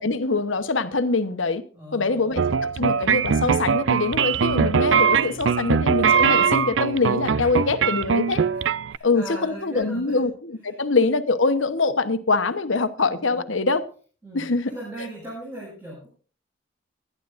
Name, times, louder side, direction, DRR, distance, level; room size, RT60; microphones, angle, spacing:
voice 1, 0.0-1.6 1.9-2.4 2.7-8.4 9.0-13.8 14.3-14.7, left 3 dB, 85° left, 1.1 m, -24 dB
voice 2, 1.7-2.4 4.8-5.0 8.9-10.2 10.7-10.8 13.1-13.5 14.2-16.1, right 1 dB, 10° right, 6.8 m, -38 dB
sound 1, 2.4-9.0, right 6 dB, 75° right, 0.5 m, -21 dB
21.5 x 11.0 x 2.6 m
head